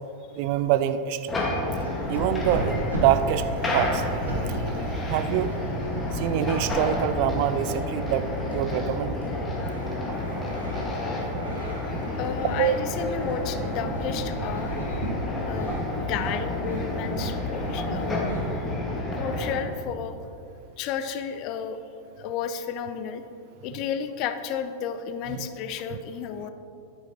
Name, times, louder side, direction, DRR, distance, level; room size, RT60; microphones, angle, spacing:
voice 1, 0.4-1.4 2.1-4.6 5.1-5.5 6.1-9.2 12.6-12.7 25.3-25.5, right 11 dB, 45° right, 12 dB, 0.4 m, -26 dB
sound 1, 1.3-19.5, left 1 dB, 15° left, 1.6 m, -30 dB
sound 2, 1.7-4.4 4.7-7.0 7.7-15.1 15.4-15.8 16.1-16.4 16.6-18.4, right 2 dB, 75° right, 1.8 m, -36 dB
voice 2, 12.2-15.0 15.4-18.3 19.2-20.2 20.8-21.8 22.2-23.2 23.6-26.5, left 8 dB, 40° left, 9 dB, 0.5 m, -32 dB
10.5 x 9.0 x 3.0 m, 2.6 s
figure-of-eight pair, 90°, 0 cm